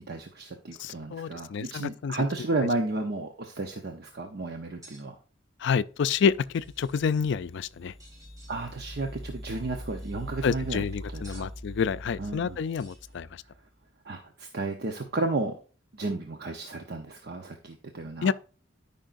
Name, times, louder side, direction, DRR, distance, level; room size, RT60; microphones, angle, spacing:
voice 1, 0.0-5.1 8.5-10.9 11.1-11.5 12.2-12.6 14.0-15.6 15.9-18.3, right 2 dB, 55° right, 0.8 m, -33 dB
voice 2, 0.8-2.2 5.6-7.9 10.4-13.3 18.2-18.3, left 6 dB, 65° left, 0.4 m, -28 dB
sound 1, 4.8-5.0 6.3-7.0 8.0-8.6 9.7-10.3 11.2-11.5 12.6-13.2, right 1 dB, 20° right, 3.8 m, -55 dB
sound 2, 6.1-13.6, equal, ahead, 0.7 m, -43 dB
13.0 x 5.4 x 2.5 m
head